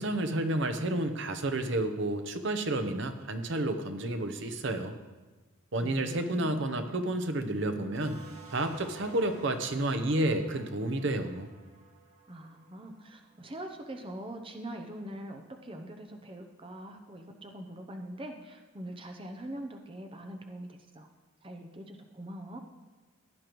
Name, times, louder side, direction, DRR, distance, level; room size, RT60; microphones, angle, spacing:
voice 1, 0.0-5.0 5.7-8.2 8.5-11.5, right 1 dB, 60° right, 7 dB, 0.8 m, -30 dB
sound 1, 7.9-13.2, right 3 dB, 90° right, 1.9 m, -52 dB
voice 2, 12.3-21.1 21.4-22.6, right 1 dB, 25° right, 4 dB, 0.7 m, -43 dB
16.5 x 10.5 x 3.0 m, 1.3 s
head